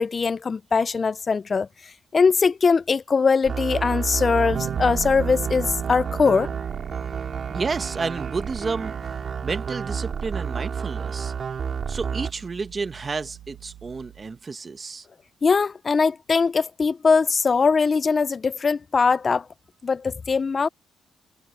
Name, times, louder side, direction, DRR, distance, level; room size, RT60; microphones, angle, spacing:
voice 1, 0.0-6.5 15.4-19.5 19.8-20.7, left 5 dB, 35° left, 0.4 m, -21 dB
sound 1, 3.4-12.3, right 6 dB, 50° right, 4.5 m, -30 dB
Bass guitar, 4.5-14.4, right 11 dB, 80° right, 1.4 m, -39 dB
voice 2, 7.5-9.0 9.4-11.3 11.9-15.0, right 4 dB, 35° right, 1.2 m, -31 dB
cardioid pair, 90°, 0 cm